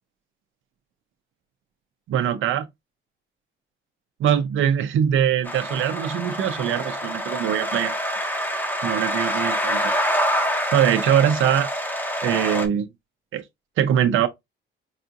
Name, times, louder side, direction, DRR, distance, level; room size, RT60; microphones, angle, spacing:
voice 1, 2.1-2.7 4.2-7.9 8.8-9.8 10.7-11.7 12.2-12.9 13.3-13.4 13.8-14.3, right 9 dB, 70° right, 0.6 m, -22 dB
sound 1, 5.4-12.7, equal, 10° left, 0.9 m, -26 dB
4.8 x 2.4 x 2.6 m
cardioid pair, 130°, 21 cm